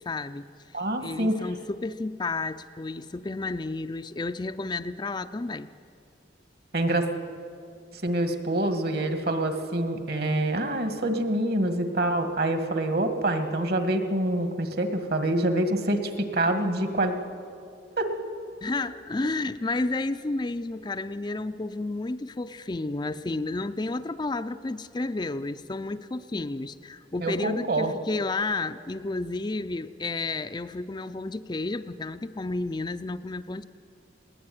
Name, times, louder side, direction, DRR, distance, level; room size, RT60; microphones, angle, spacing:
voice 1, 0.1-0.5 1.0-5.7 18.6-33.6, left 2 dB, 25° left, 10 dB, 0.4 m, -31 dB
voice 2, 0.7-1.4 6.7-7.1 7.9-17.1 18.0-18.3 27.2-27.9, right 1 dB, 55° right, 7 dB, 1.9 m, -26 dB
21.0 x 18.5 x 9.4 m, 2.4 s
head